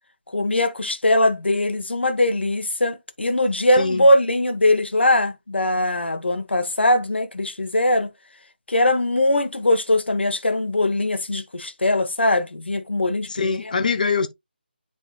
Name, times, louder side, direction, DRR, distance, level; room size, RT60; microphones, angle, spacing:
voice 1, 0.3-8.1 8.7-13.6, left 1 dB, 80° left, 1.4 m, -21 dB
voice 2, 3.8-4.1 13.2-14.3, left 4 dB, 45° left, 0.9 m, -23 dB
10.5 x 4.2 x 2.3 m
figure-of-eight pair, 155°, 6 cm